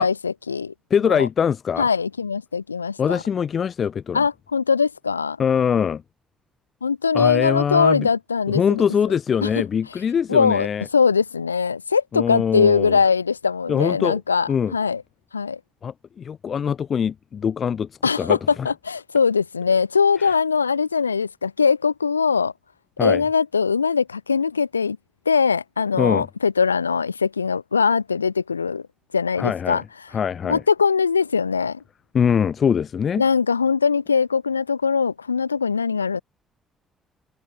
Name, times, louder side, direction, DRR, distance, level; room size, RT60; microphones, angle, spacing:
voice 1, 0.0-0.7 1.1-1.3 1.8-3.2 4.1-5.4 6.8-8.8 9.4-9.5 9.9-10.0 10.3-15.0 15.3-15.6 18.0-22.5 23.0-25.0 25.2-28.9 29.1-29.8 30.5-31.8 33.2-36.2, left 5 dB, 90° left, 1.6 m, -21 dB
voice 2, 0.9-1.9 3.0-4.2 5.4-6.0 7.1-8.1 8.5-10.8 12.1-13.0 13.7-14.2 14.5-14.7 15.8-17.9 18.2-18.7 20.2-20.3 23.0-23.2 26.0-26.3 29.4-29.8 30.1-30.6 32.1-33.2, left 7 dB, 45° left, 3.0 m, -22 dB
figure-of-eight pair, 45°, 0 cm